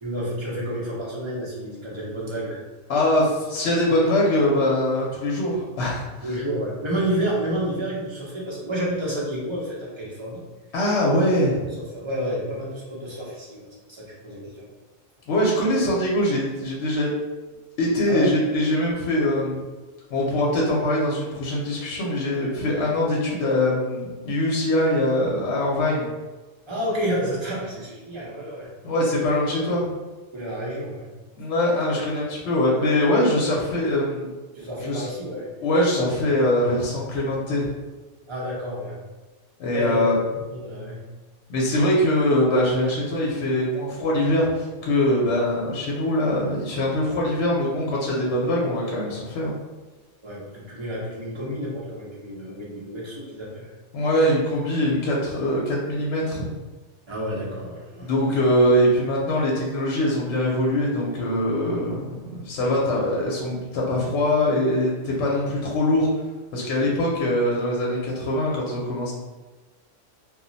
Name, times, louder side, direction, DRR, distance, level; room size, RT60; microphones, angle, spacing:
voice 1, 0.0-2.6 6.2-10.4 11.5-14.7 18.0-18.3 26.7-28.7 30.3-31.1 34.5-35.5 38.3-39.0 39.7-40.1 40.5-41.0 50.2-53.7 57.1-58.1, equal, 30° right, -5 dB, 0.5 m, -30 dB
voice 2, 2.9-6.3 10.7-11.6 15.3-17.1 17.8-19.6 20.1-26.1 28.8-29.9 31.4-34.3 34.8-35.1 35.6-37.7 39.6-40.1 41.5-49.5 53.9-56.4 58.0-66.1 66.5-69.1, left 1 dB, 70° left, -3 dB, 0.9 m, -22 dB
2.3 x 2.0 x 3.8 m, 1.2 s
omnidirectional pair, 1.3 m